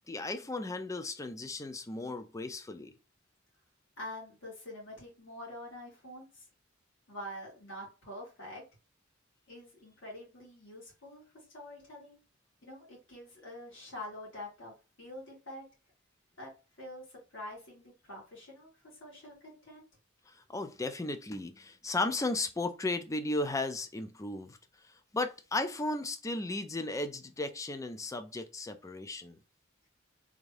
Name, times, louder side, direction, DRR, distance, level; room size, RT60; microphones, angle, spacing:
voice 1, 0.1-2.9 20.3-24.6 25.1-29.4, left 2 dB, 15° left, 0.4 m, -35 dB
voice 2, 4.0-6.5 7.1-8.6 9.5-12.2 12.6-15.6 16.4-16.5 16.8-17.0 17.3-19.9, left 1 dB, 65° left, 2.1 m, -46 dB
3.6 x 2.6 x 3.2 m
head